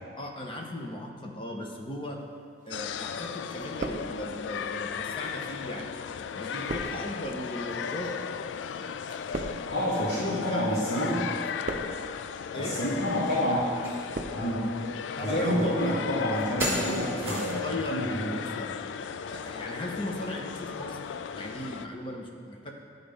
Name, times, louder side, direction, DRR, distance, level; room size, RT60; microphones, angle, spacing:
voice 1, 0.2-2.2 2.7-5.9 6.3-8.2 10.3-10.6 10.9-11.1 12.5-12.8 15.2-18.7 19.3-21.0 21.3-22.7, left 1 dB, 30° left, 1 dB, 0.9 m, -37 dB
sound 1, 2.7-21.9, left 7 dB, 90° left, 0.3 m, -36 dB
sound 2, 2.7-3.2 3.5-4.6 5.3-10.9 11.2-12.2 12.9-13.2 13.9-14.7 15.1-15.6 15.9-16.9 17.1-17.2, right 2 dB, 45° right, 0.5 m, -39 dB
voice 2, 9.7-11.3 12.6-13.6 14.3-14.6 15.2-18.3, equal, 70° left, -10 dB, 1.8 m, -28 dB
sound 3, 13.8-14.0 14.5-14.6 15.6-15.7 16.6-17.7, equal, 15° right, 2.1 m, -33 dB
11.0 x 4.0 x 5.1 m, 2.1 s
head